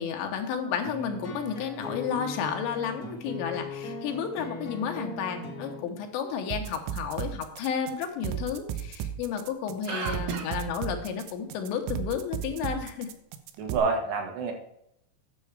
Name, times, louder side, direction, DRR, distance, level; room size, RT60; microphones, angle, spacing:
voice 1, 0.0-13.1, left 7 dB, 75° left, 4 dB, 3.4 m, -32 dB
sound 1, 0.8-5.9, left 1 dB, 45° left, 1.2 m, -39 dB
sound 2, 6.5-13.8, right 10 dB, 90° right, 3.1 m, -34 dB
voice 2, 9.9-10.4 13.6-14.5, right 4 dB, 70° right, 2 dB, 3.7 m, -29 dB
9.9 x 7.0 x 4.8 m, 0.76 s
omnidirectional pair, 5.3 m